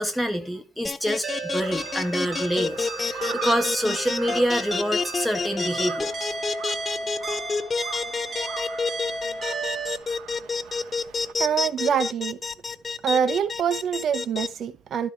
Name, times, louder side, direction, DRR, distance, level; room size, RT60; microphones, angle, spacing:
voice 1, 0.0-6.3, equal, ahead, 1.9 m, -26 dB
sound 1, 0.8-14.5, left 4 dB, 25° left, 0.7 m, -28 dB
sound 2, 1.2-10.0, right 2 dB, 25° right, 2.0 m, -34 dB
Crow, 1.5-11.3, right 10 dB, 75° right, 1.1 m, -41 dB
voice 2, 11.4-12.4 13.0-15.1, right 8 dB, 50° right, 0.8 m, -25 dB
12.0 x 4.7 x 4.5 m
cardioid pair, 100°, 0 cm